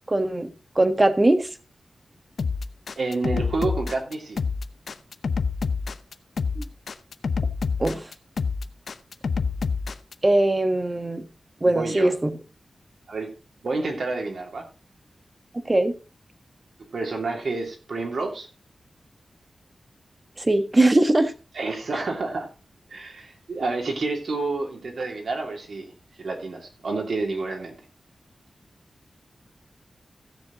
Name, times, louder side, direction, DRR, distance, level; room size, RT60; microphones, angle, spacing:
voice 1, 0.1-1.5 6.6-6.7 7.8-8.0 10.2-11.2 11.6-12.3 15.7-15.9 20.4-21.3, right 2 dB, 25° right, 1.4 m, -21 dB
sound 1, 2.4-10.1, left 5 dB, 75° left, 0.7 m, -27 dB
voice 2, 3.0-4.4 11.6-12.1 13.1-13.3 13.6-14.7 16.9-18.5 21.5-22.5 22.9-25.8 26.2-27.7, right 3 dB, 70° right, 2.8 m, -29 dB
16.0 x 6.9 x 3.9 m
wide cardioid pair, 95°, 0 cm